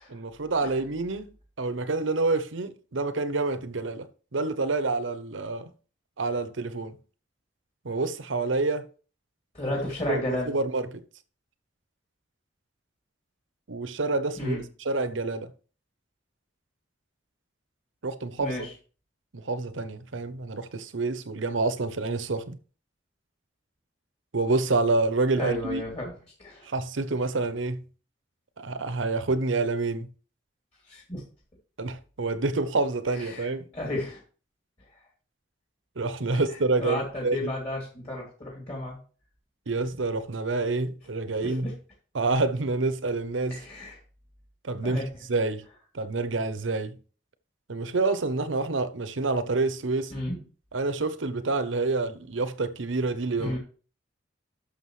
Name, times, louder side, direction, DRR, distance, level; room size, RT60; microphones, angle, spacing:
voice 1, 0.1-5.7 6.2-7.0 7.8-8.9 10.1-11.0 13.7-15.5 18.0-18.7 19.3-22.6 24.3-25.8 26.7-27.8 28.6-30.1 31.8-33.7 36.0-37.5 39.7-41.8 42.1-43.6 44.6-45.0 45.3-45.6 45.9-47.0 47.7-50.1 50.7-53.6, right 3 dB, 85° right, 0.8 m, -28 dB
voice 2, 9.5-10.5 14.4-14.6 18.4-18.7 25.4-26.1 26.4-26.7 30.9-31.2 33.2-34.2 36.3-36.4 36.8-39.0 41.4-41.7 43.5-44.0 44.8-45.1 50.1-50.4 53.4-53.6, left 1 dB, 35° left, 2.8 m, -33 dB
11.5 x 6.6 x 3.2 m
head